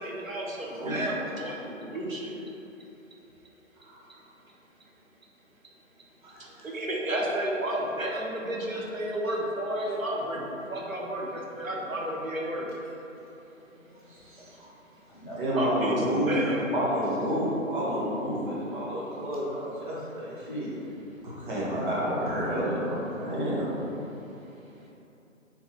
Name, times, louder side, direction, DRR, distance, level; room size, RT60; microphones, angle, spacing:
voice 1, 0.0-2.4 6.6-12.7 15.5-15.9 16.2-16.7, right 1 dB, 90° right, -2 dB, 0.8 m, -32 dB
voice 2, 0.7-1.1 3.8-4.0 6.2-6.7 9.9-10.0 13.8-14.7 15.4-16.4 16.7-20.7 21.2-23.7, equal, 40° right, -7 dB, 1.0 m, -30 dB
voice 3, 15.1-16.2 24.8-24.9, equal, 30° left, -8 dB, 0.5 m, -44 dB
3.6 x 2.8 x 3.3 m, 3.0 s
figure-of-eight pair, 140°, 39 cm